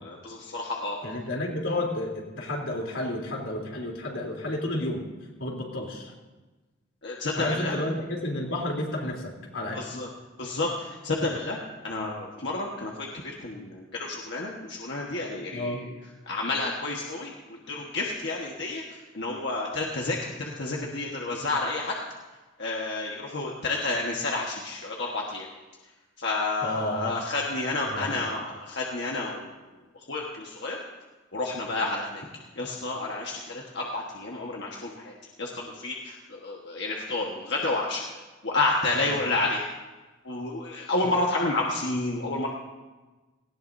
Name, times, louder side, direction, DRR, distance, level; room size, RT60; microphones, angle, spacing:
voice 1, 0.0-1.0 7.0-7.7 9.7-10.1 10.4-11.6 11.8-15.9 16.2-22.0 22.6-25.5 26.2-29.5 29.9-30.8 31.3-32.2 32.6-38.1 38.4-39.7 40.2-42.5, left 2 dB, 60° left, -2 dB, 1.5 m, -30 dB
voice 2, 1.0-5.0 5.4-6.1 7.4-9.8 15.5-15.8 26.6-27.1 27.9-28.1 39.0-39.2 41.0-41.1, left 1 dB, 85° left, -1 dB, 3.4 m, -31 dB
18.5 x 17.5 x 2.7 m, 1.2 s
head